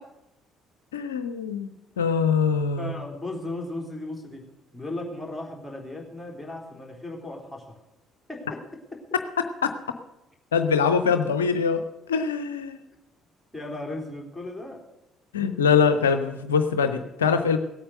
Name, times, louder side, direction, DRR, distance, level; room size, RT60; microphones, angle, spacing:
voice 1, 0.9-2.9 9.6-9.7 10.5-11.8 12.1-12.8 15.3-17.6, left 6 dB, 75° left, 9 dB, 0.6 m, -23 dB
voice 2, 2.8-4.5 4.7-7.8 8.3-9.0 13.5-14.8, left 2 dB, 5° left, 0 dB, 3.8 m, -36 dB
17.0 x 8.7 x 6.6 m, 0.96 s
figure-of-eight pair, 50°, 0 cm